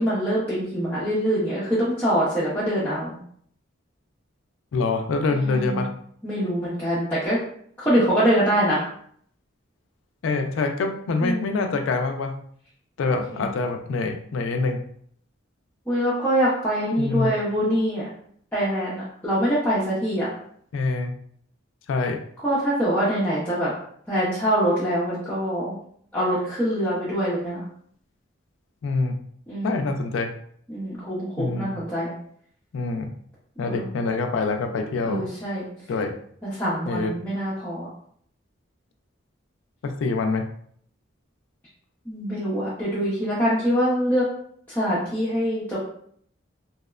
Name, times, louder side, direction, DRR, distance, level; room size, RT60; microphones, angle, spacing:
voice 1, 0.0-3.2 5.3-5.9 6.2-7.4 7.8-8.9 11.2-11.6 13.1-13.5 15.9-18.0 18.5-20.3 22.4-23.7 24.1-25.8 26.1-27.6 29.5-29.9 30.7-32.1 33.7-33.9 35.0-35.7 36.4-37.9 42.1-44.2 44.7-45.8, equal, 10° left, -10 dB, 0.5 m, -24 dB
voice 2, 4.7-5.9 10.2-12.4 13.0-14.8 17.0-17.3 20.7-21.1 21.9-22.2 28.8-29.2 29.6-30.3 31.4-31.7 32.7-33.1 33.6-35.2 35.9-36.2 36.9-37.2 39.8-40.5, left 3 dB, 75° left, 6 dB, 0.3 m, -25 dB
2.8 x 2.1 x 2.3 m, 0.63 s
head